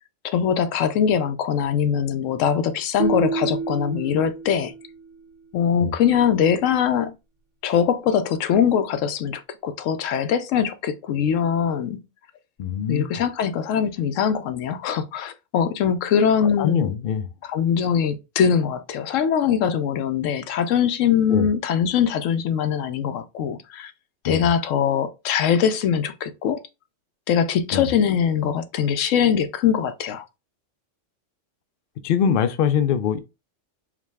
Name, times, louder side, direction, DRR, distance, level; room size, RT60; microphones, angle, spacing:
voice 1, 0.2-4.7 5.5-7.1 7.6-12.0 12.9-16.9 17.4-23.9 24.2-26.6 27.3-30.2, left 8 dB, 80° left, 1.0 m, -22 dB
sound 1, 3.0-5.2, right 5 dB, 80° right, 1.0 m, -28 dB
voice 2, 12.6-13.1 16.6-17.2 21.3-21.5 24.2-24.5 27.7-27.9 32.0-33.2, left 8 dB, 60° left, 0.6 m, -22 dB
4.8 x 2.3 x 3.4 m
omnidirectional pair, 1.3 m